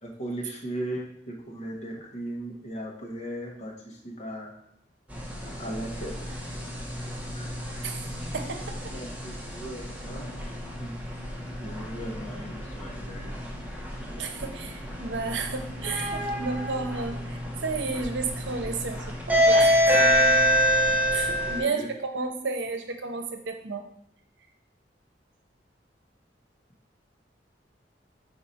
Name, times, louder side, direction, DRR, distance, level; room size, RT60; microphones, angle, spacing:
voice 1, 0.0-4.5 5.6-6.3 7.3-7.5 8.9-10.9 11.6-13.5 21.4-21.9, right 1 dB, 40° left, -1 dB, 1.4 m, -38 dB
sound 1, 5.1-21.6, equal, 10° right, 1.1 m, -27 dB
voice 2, 8.3-8.9 14.2-20.1 21.1-23.8, right 4 dB, 85° right, 6 dB, 0.8 m, -32 dB
4.9 x 4.8 x 4.3 m, 0.71 s
head